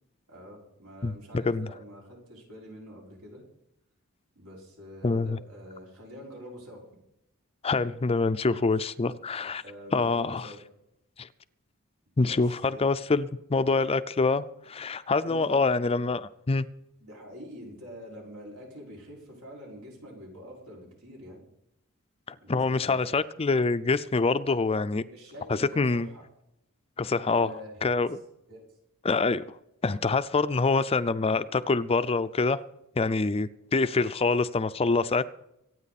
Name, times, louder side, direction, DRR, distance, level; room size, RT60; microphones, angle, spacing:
voice 1, 0.3-3.4 4.4-6.8 9.0-10.6 12.2-12.9 15.2-15.7 17.0-21.4 22.4-23.1 25.0-26.2 27.4-28.0 28.5-28.7, equal, 80° right, 5.4 m, -46 dB
voice 2, 5.0-5.4 7.6-9.6 9.9-10.5 11.2-11.3 12.2-16.7 22.3-25.0 25.8-26.1 27.0-27.5 27.8-28.2 29.0-29.4 29.8-32.6 33.0-35.2, left 3 dB, 25° left, 0.5 m, -25 dB
25.0 x 9.2 x 4.2 m
head